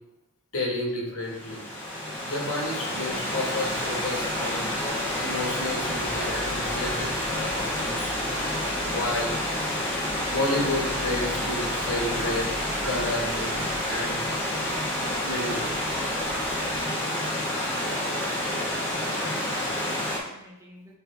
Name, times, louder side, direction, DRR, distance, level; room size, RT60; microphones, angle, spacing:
voice 1, 0.5-1.6 2.3-4.7 5.2-8.4 8.9-9.4 10.3-12.5 12.8-14.3 15.2-16.0, left 1 dB, 85° left, -3 dB, 2.0 m, -31 dB
Stream / Liquid, 1.3-20.2, left 1 dB, 10° left, 1.4 m, -29 dB
sound 1, 3.6-16.8, left 1 dB, 55° left, 2.0 m, -44 dB
voice 2, 18.1-18.5 19.0-20.9, right 1 dB, 15° right, -2 dB, 1.1 m, -45 dB
8.1 x 3.5 x 3.6 m, 0.87 s
head